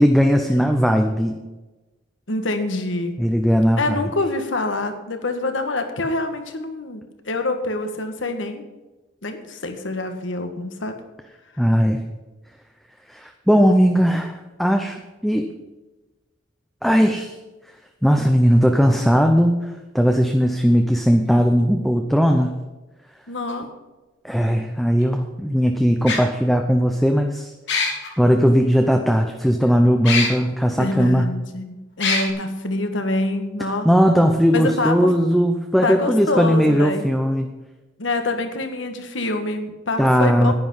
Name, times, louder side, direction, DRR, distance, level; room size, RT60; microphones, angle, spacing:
voice 1, 0.0-1.4 3.2-4.0 11.6-12.0 13.1-15.5 16.8-17.4 18.0-22.6 24.2-27.5 28.2-31.3 33.8-37.5 40.0-40.5, equal, ahead, 4 dB, 0.6 m, -18 dB
voice 2, 2.3-3.1 3.8-8.6 9.2-11.0 23.3-23.7 30.8-33.9 34.5-35.1 35.8-37.0 38.0-40.5, left 2 dB, 90° left, 7 dB, 1.5 m, -26 dB
sound 1, 23.5-23.6 25.0-25.1 26.1-26.2 27.7-28.1 30.1-30.3 30.9-31.0 32.0-32.2, left 4 dB, 75° left, 2.8 m, -21 dB
10.5 x 10.0 x 5.5 m, 1.1 s
head